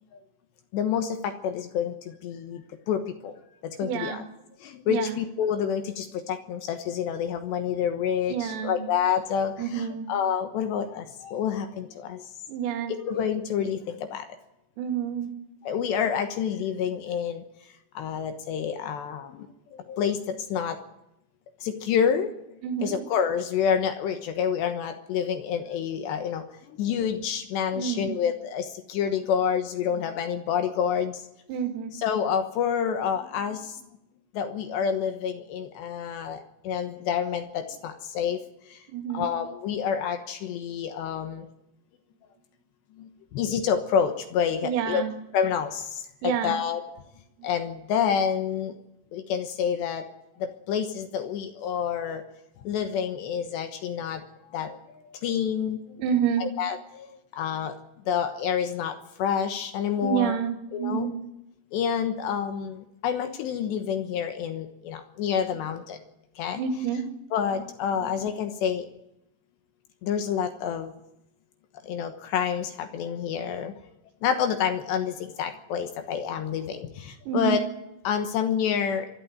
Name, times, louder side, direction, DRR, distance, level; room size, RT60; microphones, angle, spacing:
voice 1, 0.7-3.3 3.6-4.2 4.6-12.2 12.9-14.4 15.6-17.4 17.9-20.8 21.6-22.3 22.8-31.2 32.0-33.8 34.3-38.4 38.7-38.8 39.1-41.5 43.0-45.0 45.3-46.8 47.4-48.8 49.1-50.1 50.4-52.2 52.6-54.2 54.5-56.0 56.4-57.8 58.1-60.4 60.7-61.1 61.7-66.0 66.4-66.6 67.3-68.9 70.0-70.9 71.8-73.7 74.2-77.6 78.0-79.1, left 8 dB, 70° left, 7 dB, 3.0 m, -28 dB
voice 2, 3.8-4.3 4.9-5.2 8.3-8.9 9.6-10.1 12.5-12.9 14.8-15.3 22.6-23.0 27.7-28.2 31.5-31.9 38.9-39.3 44.6-45.1 46.2-46.5 47.4-47.5 56.0-56.5 60.0-61.2 66.5-67.0 68.0-68.2 77.3-77.6, right 8 dB, 85° right, 5 dB, 4.5 m, -28 dB
24.0 x 12.5 x 9.3 m, 0.86 s
omnidirectional pair, 5.9 m